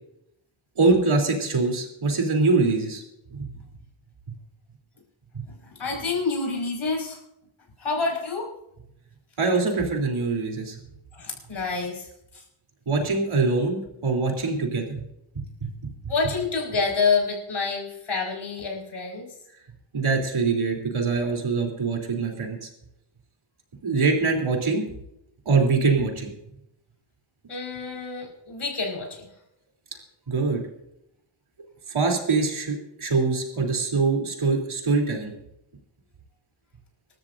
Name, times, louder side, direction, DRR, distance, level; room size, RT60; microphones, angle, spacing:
voice 1, 0.8-3.0 3.4-3.5 5.3-5.4 9.4-10.7 12.8-15.0 15.3-15.9 19.9-22.7 23.8-24.8 25.4-26.3 30.3-30.6 31.9-35.3, right 4 dB, 80° right, 1 dB, 3.4 m, -23 dB
voice 2, 5.8-7.2 7.8-8.5 11.1-12.1 12.3-12.4 16.1-19.3 27.5-29.3, left 4 dB, 75° left, -1 dB, 5.3 m, -27 dB
26.0 x 13.0 x 2.6 m, 0.81 s
wide cardioid pair, 140°, 49 cm